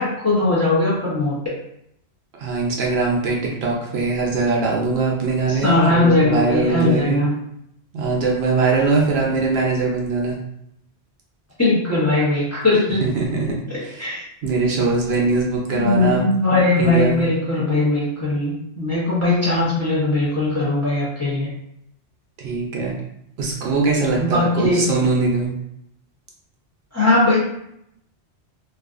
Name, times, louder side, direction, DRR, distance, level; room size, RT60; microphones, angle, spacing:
voice 1, 0.0-1.4 5.5-7.3 11.6-13.0 13.7-14.2 15.7-21.5 24.2-24.9 26.9-27.4, left 2 dB, 15° left, -7 dB, 0.7 m, -19 dB
voice 2, 2.4-7.2 7.9-10.4 13.0-13.5 13.8-14.1 14.4-16.2 16.8-17.3 22.4-22.9 23.4-25.5, right 3 dB, 70° right, -2 dB, 0.8 m, -21 dB
2.6 x 2.4 x 2.4 m, 0.76 s
omnidirectional pair, 1.2 m